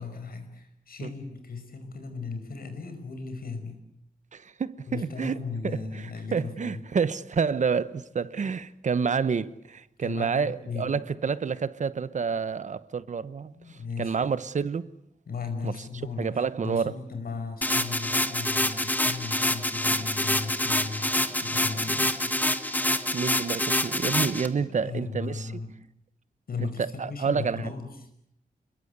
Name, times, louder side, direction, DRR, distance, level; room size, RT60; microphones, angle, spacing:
voice 1, 0.0-3.8 4.9-6.8 10.0-10.9 13.5-14.2 15.3-22.3 24.6-25.7 26.5-27.9, left 4 dB, 75° left, 5.4 m, -36 dB
voice 2, 4.3-14.9 15.6-15.7 16.2-17.0 23.1-25.5 26.6-27.7, right 6 dB, 55° right, 1.0 m, -29 dB
sound 1, 17.6-24.5, left 1 dB, 10° left, 1.4 m, -26 dB
30.0 x 22.0 x 8.2 m
wide cardioid pair, 175°, 15 cm